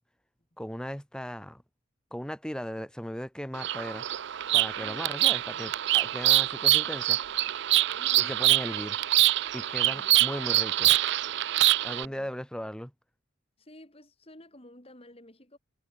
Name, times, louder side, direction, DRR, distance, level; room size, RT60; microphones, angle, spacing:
voice 1, 0.6-1.6 2.1-4.0 4.5-7.2 8.3-9.0 9.5-11.0 11.8-12.9, equal, 5° left, 3.2 m, -37 dB
Bird vocalization bird call bird song, 3.5-12.1, right 15 dB, 60° right, 0.5 m, -25 dB
voice 2, 6.6-7.5 7.9-8.4 9.8-10.2 11.5-11.6 12.0-12.3 13.6-15.6, left 1 dB, 30° left, 6.5 m, -53 dB
head